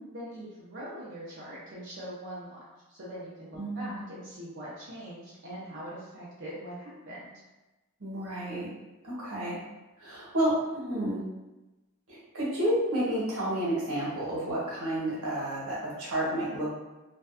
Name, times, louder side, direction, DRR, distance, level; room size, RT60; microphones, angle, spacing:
voice 1, 0.1-2.6 2.9-7.3, equal, 55° right, -8 dB, 0.6 m, -42 dB
voice 2, 3.5-4.0 8.0-8.7 9.0-9.6 10.0-11.2 12.1-16.8, right 1 dB, 90° right, -7 dB, 1.0 m, -30 dB
2.5 x 2.1 x 2.4 m, 1.1 s
head